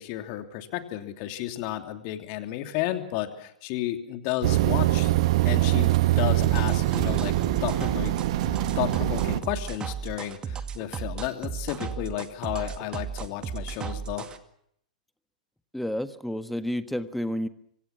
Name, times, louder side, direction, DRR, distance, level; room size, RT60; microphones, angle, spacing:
voice 1, 0.0-5.1 5.4-7.4 7.6-8.2 8.7-14.3, left 13 dB, 45° left, 7 dB, 3.0 m, -32 dB
sound 1, 4.4-9.4, right 15 dB, 55° right, 1.5 m, -23 dB
sound 2, 6.4-14.4, right 7 dB, 20° right, 2.1 m, -35 dB
voice 2, 15.7-17.5, equal, ahead, 12 dB, 1.5 m, -30 dB
26.0 x 25.0 x 6.1 m, 0.71 s
figure-of-eight pair, 100°, 4 cm